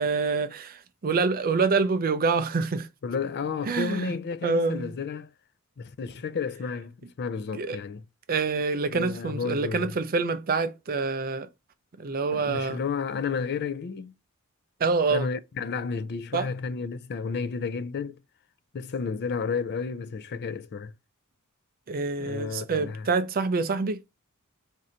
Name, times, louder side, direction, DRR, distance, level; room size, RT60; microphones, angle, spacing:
voice 1, 0.0-2.9 3.6-4.2 4.4-4.9 7.5-7.8 8.3-11.5 12.0-12.8 14.8-15.3 16.3-16.5 21.9-24.0, right 4 dB, 40° right, 0.5 m, -26 dB
voice 2, 3.0-5.3 5.8-8.0 8.9-9.9 12.3-14.1 15.1-18.2 18.7-20.9 22.2-23.1, left 5 dB, 50° left, 0.4 m, -32 dB
3.7 x 2.7 x 4.3 m
head